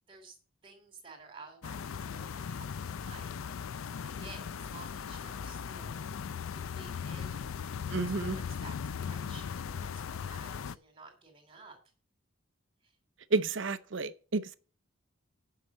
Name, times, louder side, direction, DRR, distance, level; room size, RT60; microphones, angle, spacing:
voice 1, 0.6-6.0 6.4-7.4 8.3-11.8 12.8-12.9, right 3 dB, 25° right, 2.8 m, -53 dB
sound 1, 1.6-10.8, left 7 dB, 80° left, 0.4 m, -38 dB
voice 2, 7.9-8.4 13.3-14.6, right 3 dB, 65° right, 0.7 m, -31 dB
9.6 x 5.7 x 7.2 m
head